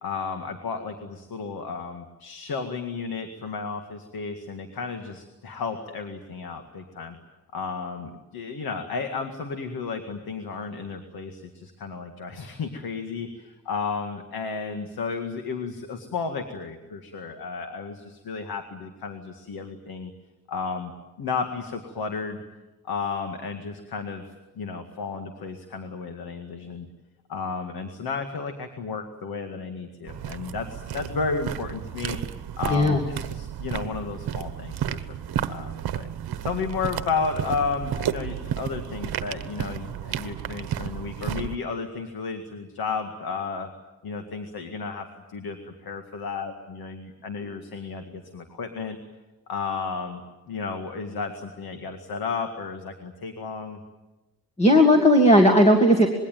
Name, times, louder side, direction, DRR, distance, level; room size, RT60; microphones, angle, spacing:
voice 1, 0.0-7.2 7.5-20.1 20.5-20.9 21.2-22.4 22.9-24.2 24.6-26.9 27.3-32.2 32.6-35.2 35.5-36.1 36.4-43.7 44.0-49.0 49.5-53.8, left 5 dB, 60° left, 6 dB, 2.1 m, -33 dB
sound 1, 30.1-41.6, right 10 dB, 65° right, 1.2 m, -32 dB
voice 2, 32.7-33.0 54.6-56.1, equal, 15° left, 3 dB, 2.0 m, -16 dB
26.0 x 21.5 x 9.2 m, 1.1 s
wide cardioid pair, 175°, 40 cm